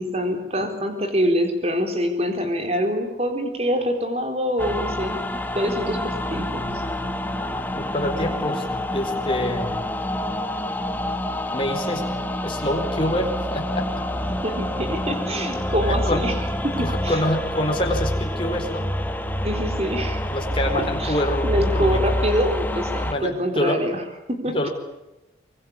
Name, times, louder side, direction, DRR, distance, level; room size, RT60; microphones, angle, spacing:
voice 1, 0.0-6.8 8.3-8.4 14.3-16.4 16.6-17.2 19.4-20.2 20.8-24.7, equal, 35° right, 5 dB, 4.1 m, -25 dB
sound 1, 4.6-23.1, left 1 dB, 10° left, 1.4 m, -27 dB
voice 2, 7.8-8.7 8.9-9.8 11.5-12.0 12.4-13.9 15.8-16.2 16.8-18.8 20.3-22.0 23.0-23.8 24.5-24.7, left 1 dB, 30° left, 3 dB, 4.5 m, -26 dB
25.0 x 24.0 x 8.7 m, 0.94 s
head